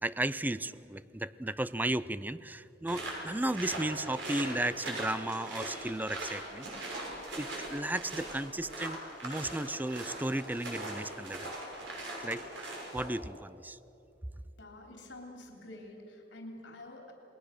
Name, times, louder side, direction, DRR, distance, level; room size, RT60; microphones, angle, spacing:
voice 1, 0.0-7.0 7.4-11.5 12.2-12.4 12.9-13.8, right 1 dB, 10° right, 16 dB, 0.5 m, -34 dB
sound 1, 2.9-13.2, right 1 dB, 80° right, 6.1 m, -40 dB
voice 2, 14.6-17.1, left 1 dB, 85° left, 2 dB, 3.6 m, -48 dB
28.5 x 20.5 x 6.7 m, 2.9 s
head